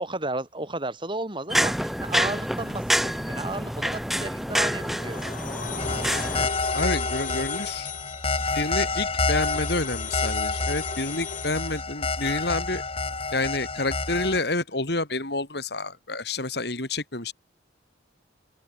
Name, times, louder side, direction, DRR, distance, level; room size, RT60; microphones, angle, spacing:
voice 1, 0.0-5.3, right 2 dB, 30° right, 4.7 m, -33 dB
sound 1, 1.5-6.5, equal, ahead, 5.2 m, -27 dB
sound 2, 4.4-11.8, left 6 dB, 50° left, 4.5 m, -37 dB
sound 3, 5.8-14.4, left 3 dB, 30° left, 5.0 m, -29 dB
voice 2, 6.7-7.9 8.5-12.8 13.3-17.3, left 2 dB, 65° left, 4.3 m, -29 dB
open air
head